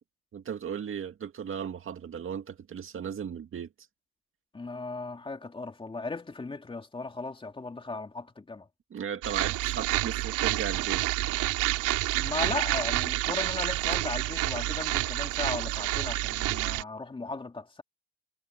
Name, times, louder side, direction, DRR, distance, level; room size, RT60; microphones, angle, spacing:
voice 1, 0.3-3.7 8.9-11.1, right 8 dB, 45° right, 2.1 m, -36 dB
voice 2, 4.5-8.7 12.2-17.8, left 3 dB, 15° left, 2.8 m, -36 dB
sound 1, 9.2-16.8, right 17 dB, 90° right, 3.0 m, -29 dB
cardioid pair, 120°, 31 cm